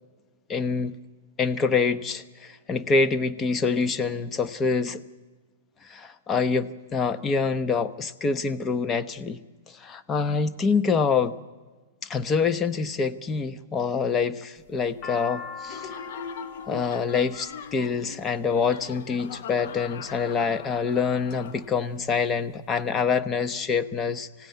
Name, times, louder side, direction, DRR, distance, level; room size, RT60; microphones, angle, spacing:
voice 1, 0.5-1.0 1.4-5.0 5.8-9.4 9.7-11.3 12.0-16.0 16.7-24.5, left 5 dB, 20° left, 11 dB, 1.0 m, -26 dB
sound 1, 14.6-18.8 19.6-20.1 20.7-21.4 21.7-21.8 22.0-22.8, left 5 dB, 40° left, 1.4 m, -41 dB
Laughter, 15.7-22.0, left 7 dB, 60° left, 1.2 m, -41 dB
25.5 x 16.5 x 9.4 m, 1.3 s
hypercardioid pair, 120°, 0 cm